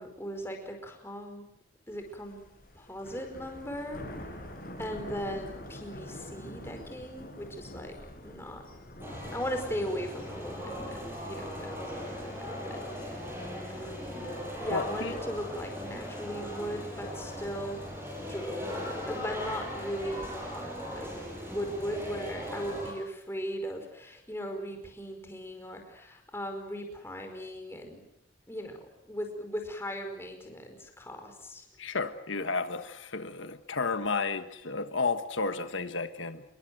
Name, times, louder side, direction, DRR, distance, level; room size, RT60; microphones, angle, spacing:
voice 1, 0.0-1.5 1.9-2.4 2.7-4.4 4.8-8.0 8.2-8.6 9.3-13.2 13.7-14.3 14.6-17.8 18.1-21.1 21.5-28.0 28.5-31.6, equal, 10° left, 4 dB, 5.0 m, -38 dB
Thunder, 1.9-19.7, left 1 dB, 45° left, 6.1 m, -48 dB
sound 1, 9.0-22.9, equal, 10° right, 7.6 m, -39 dB
voice 2, 14.7-15.1 31.8-36.4, left 4 dB, 80° left, 9 dB, 1.5 m, -32 dB
27.5 x 22.5 x 8.0 m, 0.76 s
head